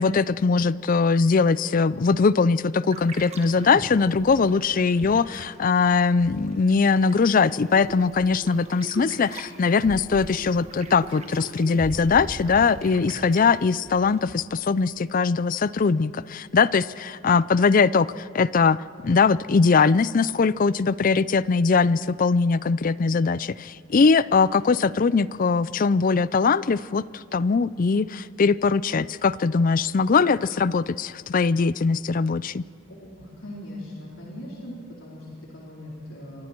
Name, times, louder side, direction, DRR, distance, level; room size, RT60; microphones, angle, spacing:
voice 1, 0.0-18.8 19.0-32.6, left 4 dB, 40° left, 19 dB, 0.4 m, -21 dB
sound 1, 2.9-14.4, right 2 dB, 30° right, 1.6 m, -40 dB
voice 2, 32.9-36.5, left 1 dB, 85° left, -5 dB, 4.2 m, -40 dB
27.0 x 24.0 x 4.5 m, 2.5 s
head